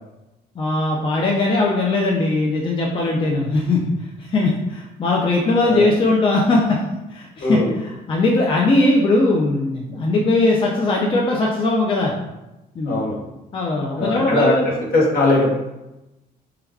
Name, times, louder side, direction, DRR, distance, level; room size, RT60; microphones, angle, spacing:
voice 1, 0.6-3.9 4.2-6.8 7.1-12.1 12.8-13.1 13.5-14.8, left 2 dB, 30° left, -2 dB, 0.4 m, -19 dB
voice 2, 7.4-7.7 12.8-13.2 14.0-15.5, left 2 dB, 60° left, -3 dB, 0.9 m, -20 dB
3.3 x 2.2 x 2.2 m, 0.97 s
cardioid pair, 110°, 17 cm